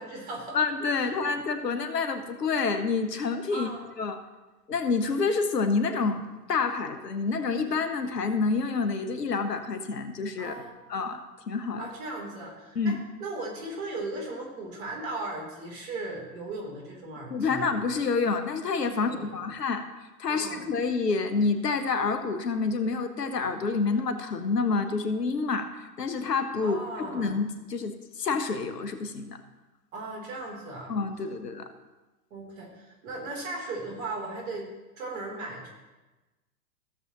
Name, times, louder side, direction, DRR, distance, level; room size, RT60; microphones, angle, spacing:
voice 1, 0.0-0.6 0.9-1.1 3.5-3.8 10.4-10.7 11.8-17.7 18.9-19.4 20.3-20.7 26.6-27.3 29.9-31.0 32.3-35.7, right 2 dB, 55° right, 0 dB, 3.2 m, -37 dB
voice 2, 0.5-3.7 4.0-4.2 4.7-6.2 6.5-10.6 10.9-11.2 11.5-11.9 12.7-13.0 17.3-19.8 20.2-29.4 30.9-31.7, left 4 dB, 80° left, 8 dB, 1.1 m, -28 dB
15.5 x 7.2 x 2.9 m, 1.1 s
figure-of-eight pair, 100°, 48 cm